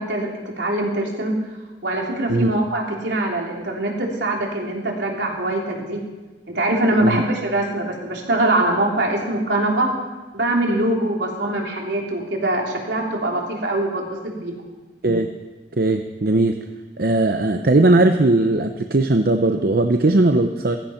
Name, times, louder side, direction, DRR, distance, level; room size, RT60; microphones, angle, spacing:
voice 1, 0.0-1.3 1.8-6.0 6.5-9.9 10.3-14.5, right 1 dB, 75° right, -1 dB, 3.5 m, -23 dB
voice 2, 15.8-16.6 17.0-20.8, right 2 dB, 55° right, 6 dB, 0.7 m, -18 dB
15.5 x 15.0 x 5.8 m, 1.2 s
head